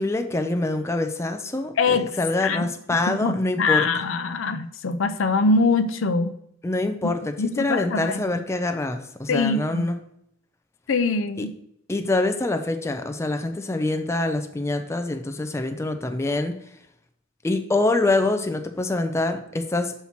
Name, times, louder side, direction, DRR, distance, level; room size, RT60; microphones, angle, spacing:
voice 1, 0.0-3.8 6.6-10.0 11.4-11.5 11.9-16.5 17.4-19.9, left 2 dB, 15° left, 6 dB, 0.4 m, -25 dB
voice 2, 1.8-2.7 3.1-6.3 7.4-8.2 9.3-9.9 10.9-11.5, left 3 dB, 70° left, 9 dB, 0.5 m, -23 dB
5.7 x 4.5 x 5.7 m, 0.73 s
head